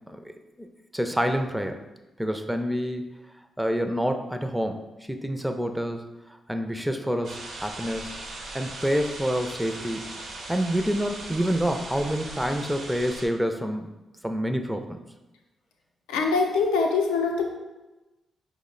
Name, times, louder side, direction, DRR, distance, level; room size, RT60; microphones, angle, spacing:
voice 1, 0.6-1.8 2.2-3.2 3.6-6.0 6.5-8.1 8.5-10.1 10.5-13.9 14.2-15.0, equal, 5° right, 6 dB, 0.4 m, -27 dB
sound 1, 7.2-13.3, right 2 dB, 75° right, 0.8 m, -39 dB
voice 2, 16.1-17.5, left 4 dB, 80° left, 2 dB, 0.5 m, -23 dB
5.0 x 2.1 x 3.7 m, 1.1 s
hypercardioid pair, 40°, 0 cm